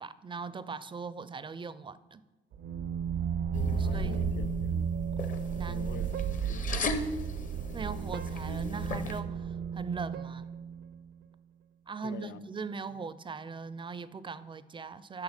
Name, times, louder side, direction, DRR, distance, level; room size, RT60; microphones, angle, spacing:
voice 1, 0.0-2.2 3.8-4.2 5.6-6.3 7.7-10.4 11.9-15.2, right 5 dB, 25° right, 0.4 m, -40 dB
sound 1, 2.5-11.1, right 8 dB, 75° right, 0.6 m, -34 dB
sound 2, 3.5-9.2, left 3 dB, 40° left, 0.8 m, -37 dB
voice 2, 3.7-4.9 5.7-6.1 6.4-7.3 12.0-12.4 12.9-13.0, left 9 dB, 65° left, 0.5 m, -47 dB
7.1 x 5.8 x 6.5 m
cardioid pair, 90°, 20 cm